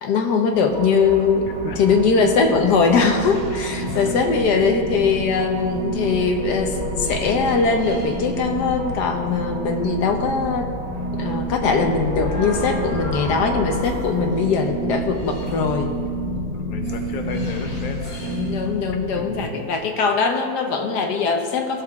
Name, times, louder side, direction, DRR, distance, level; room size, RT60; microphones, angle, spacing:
voice 1, 0.0-1.5 1.8-10.7 11.2-15.9 18.2-21.8, left 5 dB, 90° left, 4 dB, 1.6 m, -21 dB
sound 1, 0.5-19.4, right 1 dB, 65° left, 3.3 m, -29 dB
voice 2, 3.8-4.1 16.5-18.2 19.1-19.7, left 3 dB, 40° left, 4 dB, 0.7 m, -33 dB
17.0 x 6.7 x 3.6 m, 2.2 s
omnidirectional pair, 1.7 m